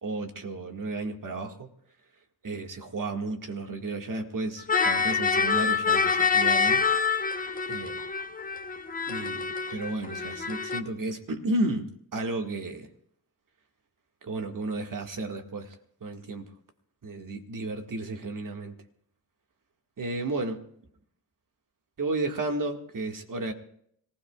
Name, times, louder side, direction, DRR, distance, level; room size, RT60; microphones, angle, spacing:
voice 1, 0.0-1.7 2.4-6.8 7.7-8.0 9.1-9.4 9.7-12.9 14.2-15.7 16.0-16.5 17.0-18.7 20.0-20.6 22.0-23.5, right 2 dB, 50° right, 4 dB, 2.0 m, -33 dB
sound 1, 4.6-10.8, left 5 dB, 20° left, 1.0 m, -26 dB
26.0 x 16.0 x 2.4 m, 0.69 s
supercardioid pair, 50°, 40 cm